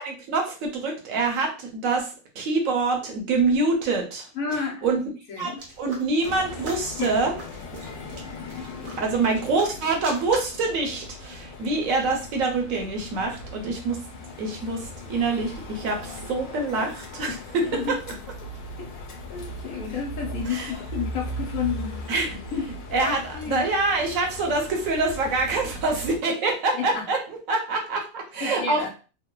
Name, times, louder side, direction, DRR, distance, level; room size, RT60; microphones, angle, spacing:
voice 1, 0.0-5.0 5.4-5.5 5.8-7.3 9.0-14.0 14.4-18.0 20.4-20.7 22.1-22.4 22.9-28.9, right 3 dB, 65° right, 1 dB, 1.0 m, -26 dB
voice 2, 4.4-4.8 5.3-5.6 7.0-7.1 17.7-17.9 18.8-18.9 19.3-21.9 22.5-22.6 23.0-23.7 26.9-27.0 28.4-28.9, left 6 dB, 70° left, 1 dB, 1.1 m, -30 dB
sound 1, 5.6-12.4, right 3 dB, 85° right, 1.3 m, -43 dB
sound 2, 6.2-26.2, left 1 dB, 85° left, 1.2 m, -38 dB
3.0 x 2.1 x 2.2 m, 0.35 s
omnidirectional pair, 1.6 m